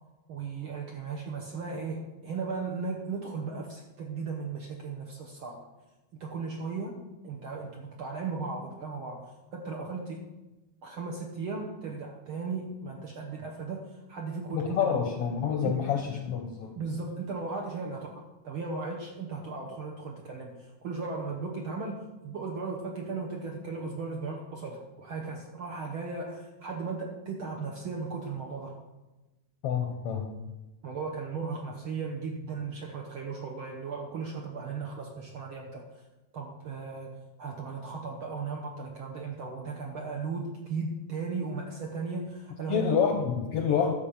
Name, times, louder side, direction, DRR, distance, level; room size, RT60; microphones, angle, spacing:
voice 1, 0.3-5.6 6.2-9.2 9.5-10.2 10.8-15.0 15.6-15.8 16.7-22.0 22.2-28.8 30.8-36.0 36.3-42.9, right 4 dB, 60° right, 0 dB, 1.4 m, -36 dB
voice 2, 14.5-16.8 29.6-30.3 42.7-43.9, left 7 dB, 75° left, 4 dB, 1.4 m, -28 dB
11.5 x 5.3 x 7.1 m, 1.1 s
omnidirectional pair, 3.4 m